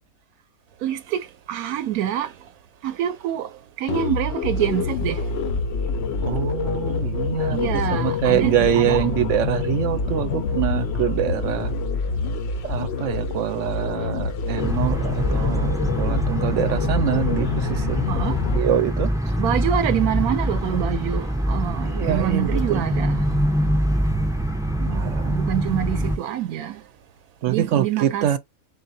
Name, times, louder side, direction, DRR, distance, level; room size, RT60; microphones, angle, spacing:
voice 1, 0.8-1.2 1.5-2.3 2.8-3.5 3.8-5.2 7.5-9.1 18.1-18.4 19.4-23.2 25.0-26.8 27.5-28.4, right 11 dB, 90° right, 1.1 m, -26 dB
sound 1, 3.9-18.6, left 5 dB, 60° left, 0.7 m, -26 dB
voice 2, 6.2-7.7 8.0-11.7 12.6-18.1 18.5-19.1 21.8-22.8 24.8-25.5 27.4-28.4, right 11 dB, 65° right, 0.9 m, -24 dB
sound 2, 14.6-26.2, equal, 5° right, 0.4 m, -24 dB
4.0 x 3.9 x 2.6 m
omnidirectional pair, 1.5 m